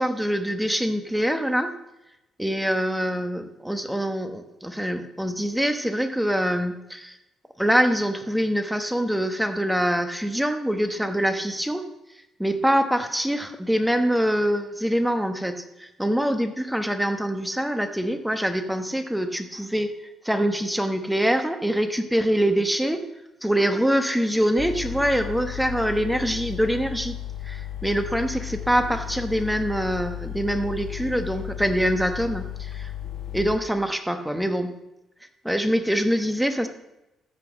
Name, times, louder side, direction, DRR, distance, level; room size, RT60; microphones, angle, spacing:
voice 1, 0.0-1.8 2.4-7.2 7.6-11.8 12.4-23.0 23.4-27.2 27.4-32.9 33.3-34.7 35.4-36.7, equal, 5° right, 8 dB, 1.1 m, -24 dB
sound 1, 24.6-33.6, left 11 dB, 55° left, 0.6 m, -34 dB
14.0 x 5.9 x 7.4 m, 0.94 s
cardioid pair, 130°, 0 cm